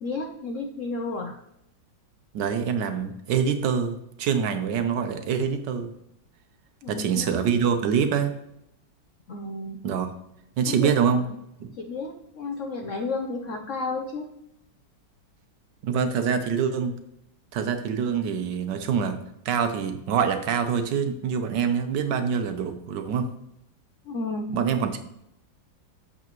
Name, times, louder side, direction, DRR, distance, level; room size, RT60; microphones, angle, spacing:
voice 1, 0.0-1.4 6.8-7.3 9.3-9.9 10.7-11.2 11.7-14.3 24.0-24.6, left 3 dB, 70° left, 3 dB, 0.7 m, -32 dB
voice 2, 2.3-5.9 6.9-8.3 9.8-10.1 10.6-11.2 11.6-11.7 15.8-16.9 17.5-19.2 19.4-23.3 24.5-25.0, right 7 dB, 70° right, 8 dB, 1.3 m, -25 dB
8.3 x 7.0 x 3.0 m, 0.81 s
omnidirectional pair, 2.1 m